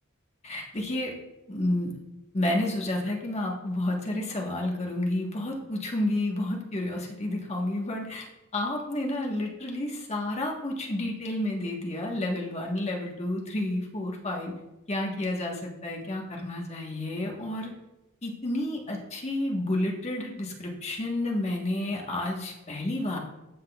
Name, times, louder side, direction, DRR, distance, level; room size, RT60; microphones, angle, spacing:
voice 1, 0.4-1.1 1.5-1.9 2.3-14.5 14.9-17.7 18.2-23.2, left 1 dB, 30° left, 0 dB, 1.2 m, -30 dB
13.5 x 5.9 x 2.3 m, 0.96 s
head